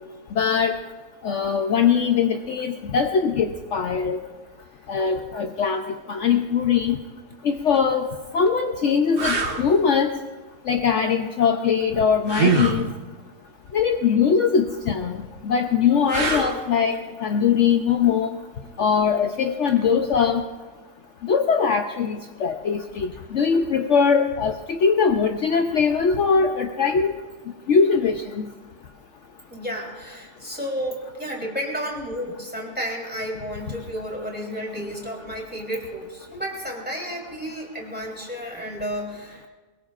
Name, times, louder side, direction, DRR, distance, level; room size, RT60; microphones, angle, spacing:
voice 1, 0.4-0.8 1.2-4.2 4.9-5.8 6.1-7.0 7.4-10.1 10.7-12.9 13.7-18.4 18.8-20.4 21.2-27.1 27.7-28.5, left 6 dB, 60° left, 4 dB, 1.0 m, -21 dB
sound 1, 7.6-7.8 8.5-8.6 9.2-9.6 12.3-12.8 16.1-16.7 19.6-19.8, right 3 dB, 40° right, 1.4 m, -23 dB
voice 2, 29.5-39.4, equal, 5° right, -2 dB, 3.5 m, -32 dB
22.5 x 22.0 x 2.5 m, 1.3 s
omnidirectional pair, 1.5 m